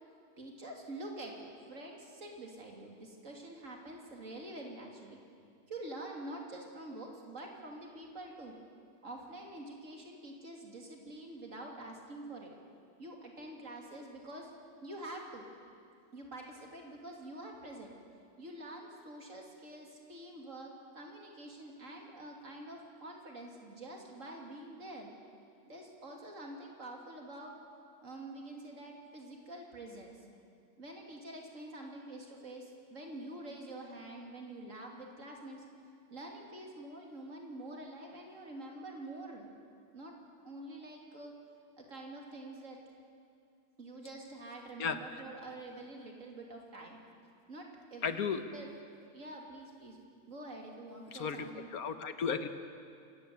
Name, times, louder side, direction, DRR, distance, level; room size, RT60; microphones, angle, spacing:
voice 1, 0.4-5.2 5.7-8.5 9.0-12.5 13.0-14.5 14.8-15.5 16.1-17.9 18.4-25.1 25.7-27.5 28.0-30.2 30.8-35.6 36.1-39.5 39.9-40.1 40.4-41.3 41.8-42.8 43.8-47.0 47.5-48.7 49.1-50.0 50.3-51.7, right 1 dB, 55° right, 0 dB, 3.3 m, -46 dB
voice 2, 44.8-45.2 48.0-48.4 51.1-52.5, left 6 dB, 75° left, 9 dB, 1.6 m, -35 dB
25.5 x 14.5 x 9.4 m, 2.4 s
omnidirectional pair, 1.6 m